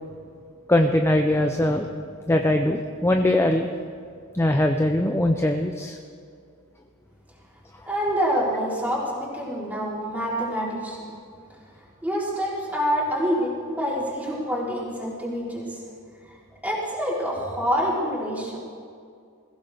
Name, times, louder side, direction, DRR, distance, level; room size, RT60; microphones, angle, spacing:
voice 1, 0.7-1.9 2.3-3.7 4.3-6.0, left 1 dB, 10° left, 4 dB, 0.6 m, -21 dB
voice 2, 7.9-11.0 12.0-15.8 16.6-18.6, equal, 5° right, -6 dB, 3.9 m, -26 dB
21.5 x 15.5 x 3.5 m, 2.3 s
head